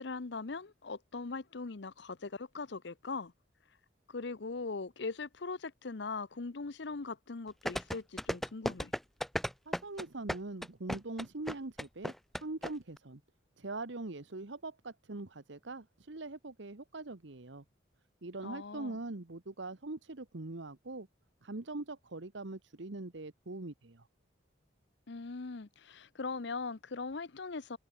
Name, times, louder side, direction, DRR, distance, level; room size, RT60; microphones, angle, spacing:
voice 1, 0.0-3.3 4.1-8.9 18.4-19.0 25.1-27.8, left 4 dB, 65° left, 0.7 m, -40 dB
sound 1, 7.7-12.7 13.0-13.1, equal, ahead, 0.5 m, -34 dB
voice 2, 9.7-13.2 13.6-17.6 18.2-21.1 21.4-24.1, right 2 dB, 70° right, 1.2 m, -42 dB
head